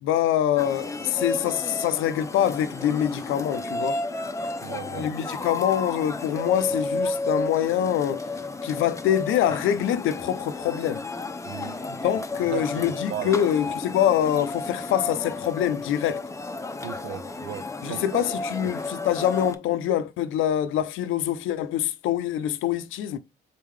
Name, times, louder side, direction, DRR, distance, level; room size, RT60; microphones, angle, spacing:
voice 1, 0.0-4.0 4.9-8.3 8.6-11.1 11.9-16.2 17.8-23.2, left 10 dB, 85° left, 0.5 m, -25 dB
sound 1, 0.6-19.5, left 2 dB, 15° left, 0.6 m, -32 dB
voice 2, 4.6-5.1 11.4-12.0 12.5-13.3 13.7-13.8 16.8-18.0 18.6-18.7, right 10 dB, 85° right, 0.6 m, -36 dB
4.1 x 3.7 x 3.1 m
cardioid pair, 90°, 20 cm